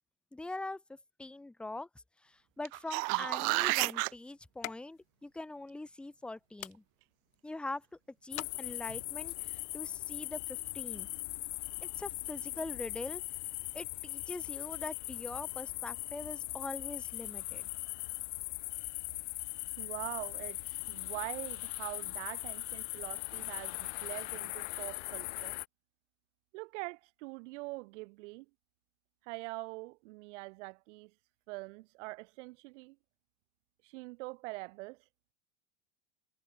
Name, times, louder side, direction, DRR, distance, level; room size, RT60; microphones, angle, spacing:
voice 1, 0.3-0.8 1.2-1.9 2.2-6.8 7.4-7.8 8.2-11.1 12.0-13.2 13.7-17.7, left 2 dB, 5° left, 0.8 m, -43 dB
sound 1, 2.6-4.1 8.9-9.0, right 40 dB or more, 40° right, 0.6 m, -30 dB
sound 2, 2.9-9.2, left 17 dB, 90° left, 3.9 m, -51 dB
sound 3, 8.3-25.7, left 26 dB, 55° left, 0.7 m, -40 dB
voice 2, 19.8-25.6 26.5-28.5 29.2-31.1 31.5-33.0 33.8-35.0, right 24 dB, 65° right, 1.9 m, -44 dB
supercardioid pair, 165°, 40 cm